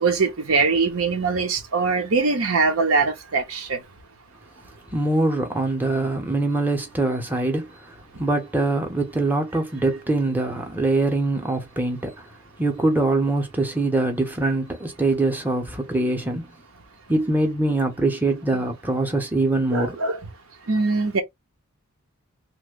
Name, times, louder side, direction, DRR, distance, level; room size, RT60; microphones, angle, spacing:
voice 1, 0.0-3.8 14.4-14.5 19.7-20.2 20.7-21.2, right 4 dB, 75° right, 0.8 m, -22 dB
voice 2, 4.9-7.7 8.2-12.2 12.6-16.5 17.1-20.0, right 2 dB, 10° right, 0.7 m, -23 dB
3.1 x 2.1 x 3.6 m
head